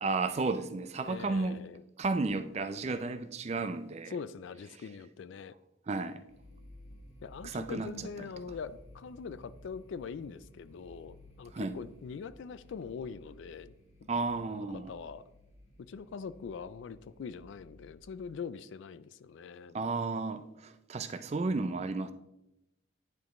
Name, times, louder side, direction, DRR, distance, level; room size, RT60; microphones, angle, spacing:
voice 1, 0.0-1.6 2.0-4.1 5.9-6.2 7.4-7.9 8.2-8.3 11.5-11.8 14.1-14.9 19.7-22.1, right 3 dB, 30° right, 11 dB, 0.4 m, -33 dB
voice 2, 1.0-1.8 4.1-5.6 7.2-13.7 14.0-14.1 14.4-15.3 15.8-19.8, left 5 dB, 70° left, 16 dB, 0.3 m, -43 dB
sound 1, 6.3-18.0, left 1 dB, 35° left, 1.2 m, -56 dB
10.0 x 5.1 x 3.1 m, 0.89 s
head